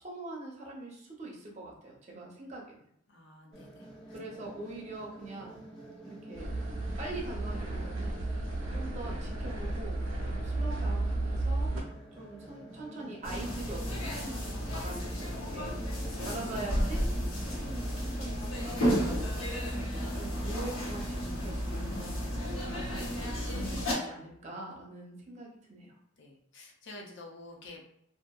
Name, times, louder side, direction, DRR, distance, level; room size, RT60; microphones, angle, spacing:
voice 1, 0.0-2.8 4.1-5.6 6.0-6.5 7.0-8.2 8.7-11.8 12.2-15.9 16.2-17.0 17.4-19.3 19.7-22.3 22.7-25.9, right 2 dB, 35° right, -2 dB, 0.6 m, -43 dB
voice 2, 3.1-3.9 8.7-8.9 19.5-19.7 26.2-27.9, left 2 dB, 60° left, 0 dB, 0.5 m, -49 dB
sound 1, 3.5-21.3, right 1 dB, 25° left, 0.9 m, -49 dB
sound 2, 6.4-11.8, right 2 dB, 75° right, 0.6 m, -33 dB
sound 3, 13.2-23.9, equal, 85° left, 0.8 m, -33 dB
2.7 x 2.5 x 2.3 m, 0.73 s
head